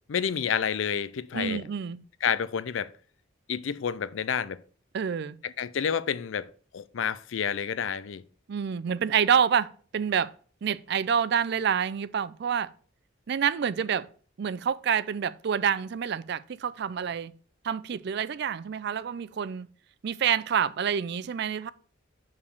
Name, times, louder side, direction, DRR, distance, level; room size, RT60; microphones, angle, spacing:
voice 1, 0.1-1.6 2.2-2.9 3.5-4.6 5.4-8.2, left 7 dB, 75° left, 0.4 m, -29 dB
voice 2, 1.3-2.0 4.9-5.4 8.5-10.3 10.6-12.7 13.3-14.1 14.4-17.3 17.6-19.7 20.0-21.7, right 7 dB, 55° right, 0.4 m, -27 dB
5.4 x 4.9 x 6.4 m
head